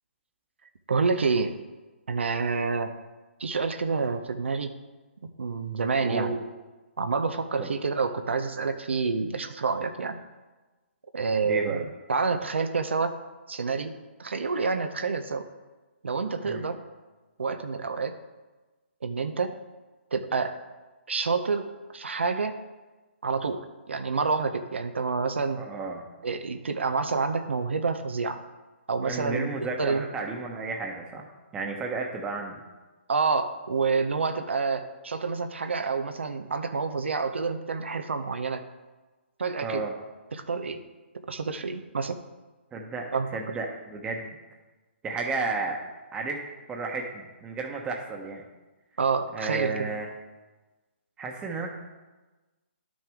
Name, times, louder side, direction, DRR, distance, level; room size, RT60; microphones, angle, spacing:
voice 1, 0.9-1.6 2.1-2.9 3.4-4.7 5.4-6.3 7.0-10.2 11.1-13.1 13.5-15.5 16.0-16.8 17.4-18.1 19.0-19.6 20.1-20.5 21.1-21.7 21.9-22.6 23.2-25.6 26.2-28.4 28.9-30.1 33.1-38.7 39.4-39.8 40.3-40.8 41.3-42.2 43.1-43.3 49.0-49.9, right 4 dB, 70° right, 8 dB, 0.7 m, -28 dB
voice 2, 6.0-6.4 7.6-7.7 11.4-11.8 16.4-16.7 25.6-26.1 29.0-31.3 31.5-32.6 39.6-39.9 42.7-44.4 45.0-45.8 46.1-46.4 46.7-48.4 49.3-50.1 51.2-51.7, right 3 dB, 15° right, 1 dB, 1.1 m, -33 dB
11.0 x 6.2 x 3.6 m, 1.2 s
figure-of-eight pair, 140°, 7 cm